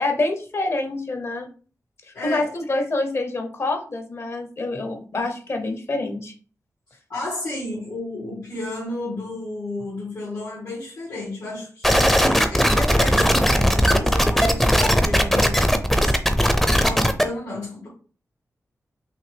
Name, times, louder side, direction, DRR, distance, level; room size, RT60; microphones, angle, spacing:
voice 1, 0.0-1.5 2.1-6.3, left 2 dB, 45° left, 0.9 m, -26 dB
voice 2, 2.1-2.5 5.1-5.3 7.1-15.6 16.0-16.3 16.6-17.9, left 2 dB, 80° left, 1.9 m, -32 dB
sound 1, 11.8-17.2, equal, 5° left, 0.5 m, -18 dB
5.8 x 2.7 x 3.4 m
wide cardioid pair, 130°, 6 cm